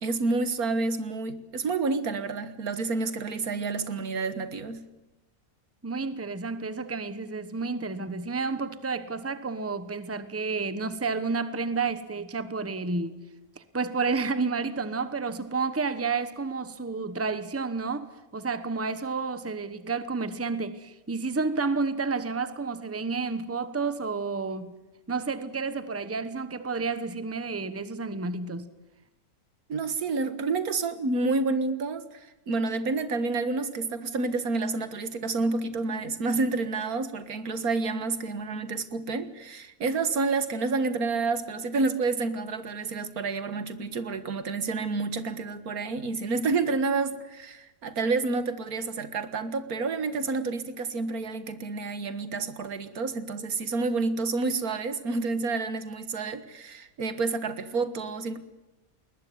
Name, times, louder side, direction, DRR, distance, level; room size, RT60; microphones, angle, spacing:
voice 1, 0.0-4.9 29.7-58.4, right 3 dB, 80° right, 1.9 m, -29 dB
voice 2, 5.8-13.2 13.6-18.1 18.3-24.7 25.1-28.7, right 4 dB, 10° right, 1.0 m, -30 dB
21.0 x 20.0 x 9.4 m
omnidirectional pair, 1.5 m